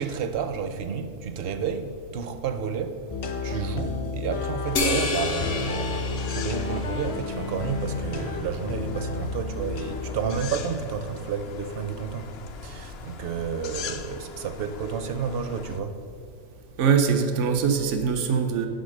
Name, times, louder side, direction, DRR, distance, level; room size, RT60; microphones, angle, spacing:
voice 1, 0.0-3.1 3.4-6.0 6.3-12.3 12.5-16.0, right 6 dB, 60° right, 0.8 m, -31 dB
sound 1, 3.1-10.5, left 3 dB, 45° left, 0.5 m, -32 dB
sound 2, 4.6-15.8, left 5 dB, 65° left, 0.8 m, -41 dB
sound 3, 4.8-7.5, left 3 dB, 80° left, 1.4 m, -29 dB
voice 2, 16.8-18.7, right 6 dB, 85° right, 1.0 m, -22 dB
8.0 x 5.6 x 6.5 m
omnidirectional pair, 1.2 m